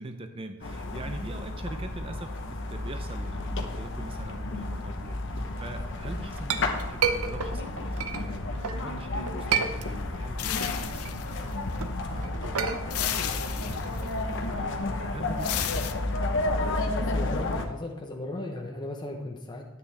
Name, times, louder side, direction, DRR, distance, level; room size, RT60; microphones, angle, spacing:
voice 1, 0.0-15.9, right 2 dB, 25° right, 6 dB, 0.6 m, -43 dB
sound 1, 0.6-17.7, left 2 dB, 60° left, 0.9 m, -32 dB
Chink clink, 6.0-8.8 9.3-10.3 10.6-14.7, right 6 dB, 85° right, 0.7 m, -32 dB
sound 2, 10.4-11.8 12.9-14.1 15.4-15.9, left 11 dB, 80° left, 0.6 m, -33 dB
voice 2, 17.0-19.7, left 2 dB, 20° left, 1 dB, 0.8 m, -36 dB
9.9 x 8.7 x 3.3 m, 0.97 s
head